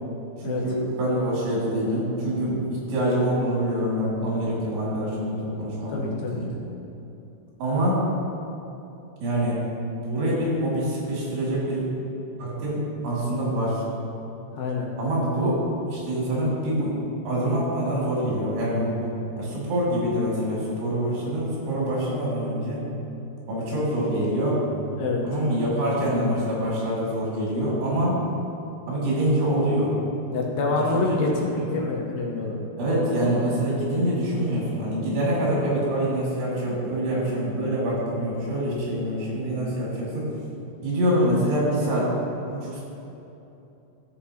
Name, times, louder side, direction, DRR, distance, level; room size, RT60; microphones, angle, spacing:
voice 1, 0.4-6.6 7.6-8.0 9.2-9.6 10.0-11.9 12.4-13.8 15.0-15.6 15.9-19.0 19.4-22.8 23.5-24.6 25.2-28.2 28.9-29.9 30.7-31.9 32.8-40.3 40.8-42.1 42.5-42.8, right 1 dB, 90° right, -6 dB, 4.3 m, -25 dB
voice 2, 5.9-6.4 14.5-14.9 25.0-25.3 30.3-32.6, left 3 dB, 75° left, -2 dB, 2.6 m, -27 dB
14.0 x 6.0 x 2.8 m, 2.9 s
omnidirectional pair, 4.7 m